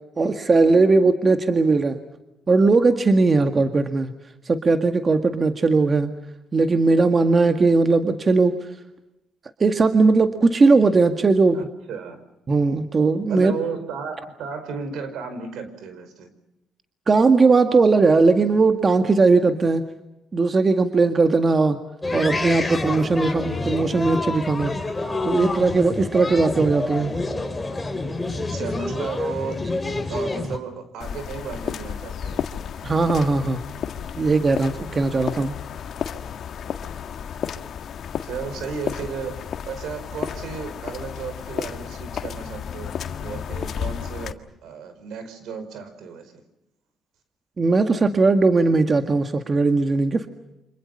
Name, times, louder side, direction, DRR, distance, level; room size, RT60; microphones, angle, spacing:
voice 1, 0.2-2.0 2.5-4.1 4.5-6.1 6.5-8.5 9.6-11.7 12.5-13.5 17.1-19.8 20.3-21.8 22.1-24.7 25.2-27.1 32.8-33.6 34.2-35.5 47.6-50.3, right 3 dB, 35° right, 7 dB, 1.9 m, -18 dB
voice 2, 11.5-12.2 13.3-16.3 28.5-29.6 30.1-32.5 38.2-46.3, right 5 dB, 80° right, 10 dB, 5.1 m, -34 dB
sound 1, 22.0-30.6, left 2 dB, 15° left, 4.0 m, -27 dB
sound 2, 31.0-44.3, left 8 dB, 65° left, 1.7 m, -32 dB
29.5 x 26.5 x 5.5 m, 0.91 s
cardioid pair, 90°, 0 cm